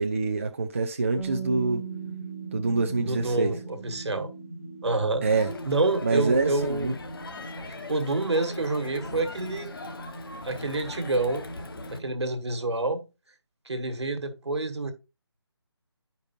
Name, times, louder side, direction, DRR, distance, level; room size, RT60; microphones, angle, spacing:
voice 1, 0.0-1.8 2.5-3.5 5.2-5.5 6.0-6.9, right 3 dB, 30° right, 0.4 m, -25 dB
Bass guitar, 1.2-7.4, right 8 dB, 10° left, 0.7 m, -41 dB
sound 1, 1.5-12.1, equal, 75° left, 2.5 m, -43 dB
voice 2, 3.0-4.3 4.8-5.2 5.6-6.9 7.7-9.7 10.4-11.5 11.9-13.0 13.7-14.9, right 2 dB, 75° right, 1.3 m, -28 dB
Crowd, 5.2-12.0, left 3 dB, 55° left, 0.8 m, -41 dB
10.0 x 5.2 x 2.6 m
figure-of-eight pair, 165°, 14 cm